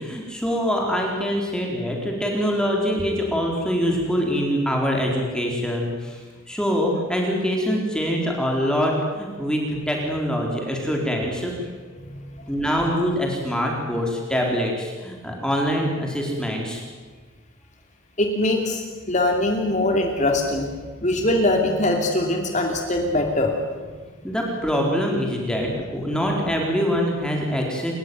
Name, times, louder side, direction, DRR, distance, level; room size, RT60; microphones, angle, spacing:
voice 1, 0.0-6.2 6.5-11.7 12.5-16.8 24.2-27.9, equal, 5° left, 0 dB, 4.1 m, -24 dB
voice 2, 18.2-20.7 21.0-23.6 25.6-25.7, left 1 dB, 35° left, 2 dB, 2.9 m, -22 dB
29.0 x 15.0 x 9.5 m, 1.5 s
head